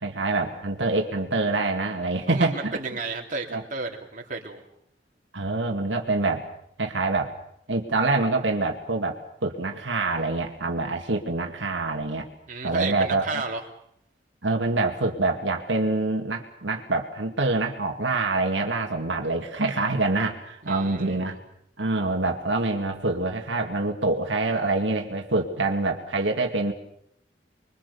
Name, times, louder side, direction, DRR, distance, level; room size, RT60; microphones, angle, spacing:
voice 1, 0.0-2.7 3.5-3.6 5.3-6.5 6.8-7.3 7.7-12.3 12.6-13.4 14.4-21.4 21.8-26.7, right 3 dB, 85° right, 2 dB, 2.2 m, -26 dB
voice 2, 2.3-4.6 12.5-13.6 20.6-21.4, right 3 dB, 45° right, 1 dB, 3.1 m, -32 dB
25.5 x 22.5 x 6.9 m, 0.73 s
head